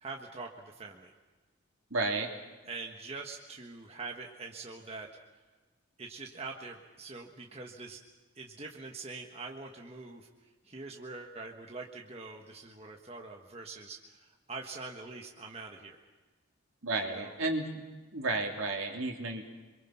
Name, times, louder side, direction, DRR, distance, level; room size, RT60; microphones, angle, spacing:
voice 1, 0.0-1.1 2.6-5.1 6.0-8.0 8.3-16.0 17.0-17.4, right 3 dB, 30° right, 1 dB, 1.5 m, -44 dB
voice 2, 1.9-2.3 16.8-17.7 18.1-19.5, right 2 dB, 70° right, 2 dB, 3.0 m, -32 dB
27.0 x 23.0 x 5.9 m, 1.3 s
head